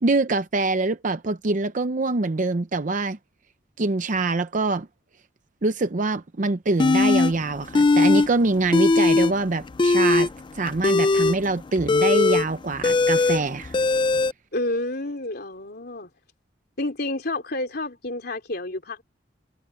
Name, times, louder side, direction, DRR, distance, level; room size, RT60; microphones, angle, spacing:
voice 1, 0.0-3.2 3.8-4.9 5.6-13.9, right 3 dB, 45° right, 0.7 m, -24 dB
sound 1, 6.8-7.3 7.7-8.3 8.5-9.3 9.7-14.3, left 3 dB, 25° left, 0.4 m, -19 dB
voice 2, 14.5-16.1 16.8-19.0, left 2 dB, 60° left, 3.4 m, -29 dB
head